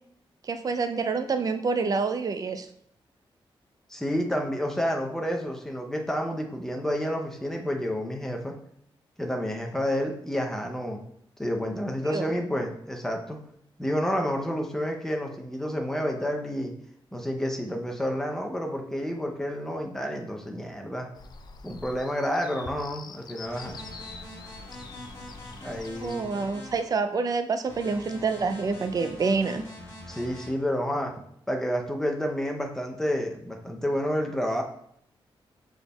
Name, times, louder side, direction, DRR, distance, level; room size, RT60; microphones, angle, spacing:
voice 1, 0.4-2.7 12.1-12.3 26.0-29.6, right 4 dB, 40° right, 9 dB, 0.4 m, -27 dB
voice 2, 3.9-8.5 9.2-11.0 11.4-13.4 13.8-16.7 17.1-21.1 21.6-23.8 25.6-26.3 30.1-34.6, equal, 5° left, 2 dB, 0.6 m, -29 dB
sound 1, 21.2-26.2, left 4 dB, 50° left, 0.4 m, -45 dB
sound 2, 23.4-26.8 27.7-30.5, left 1 dB, 30° left, 1.8 m, -44 dB
6.1 x 3.5 x 2.2 m, 0.70 s
wide cardioid pair, 130°, 9 cm